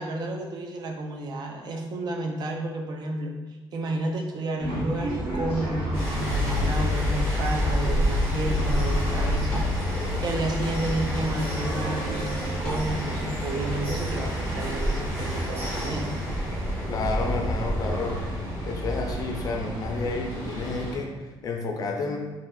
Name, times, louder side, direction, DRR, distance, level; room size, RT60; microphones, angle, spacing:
voice 1, 0.0-3.3 3.7-9.7 10.2-16.1, right 2 dB, 50° right, 2 dB, 0.4 m, -31 dB
sound 1, 4.6-21.0, right 1 dB, 80° right, 1.2 m, -37 dB
sound 2, 4.9-18.2, equal, 10° left, 0.9 m, -31 dB
sound 3, 5.9-20.9, left 2 dB, 25° right, 1.0 m, -31 dB
voice 2, 16.9-18.2 18.7-22.2, left 3 dB, 40° left, 2 dB, 0.4 m, -30 dB
3.2 x 2.7 x 2.3 m, 1.2 s
cardioid pair, 135°, 9 cm